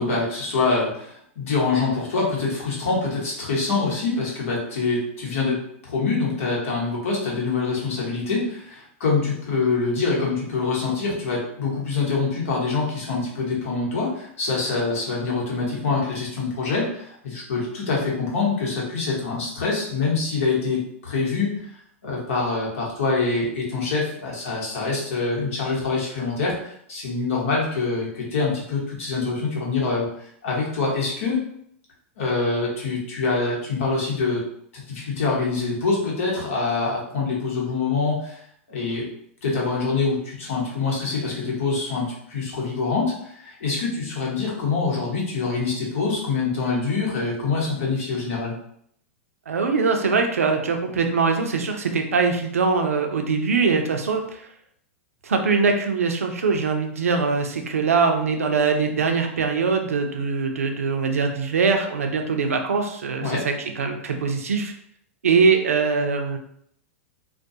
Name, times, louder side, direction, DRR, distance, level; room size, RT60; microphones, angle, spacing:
voice 1, 0.0-21.5 22.0-30.1 30.4-31.4 32.2-34.4 34.7-38.4 38.7-39.0 39.4-48.5 63.2-63.4, left 4 dB, 70° left, -3 dB, 1.0 m, -25 dB
voice 2, 49.5-54.5 55.2-64.7 65.2-66.4, right 4 dB, 90° right, 4 dB, 0.4 m, -22 dB
2.3 x 2.2 x 2.6 m, 0.69 s
hypercardioid pair, 115°, 7 cm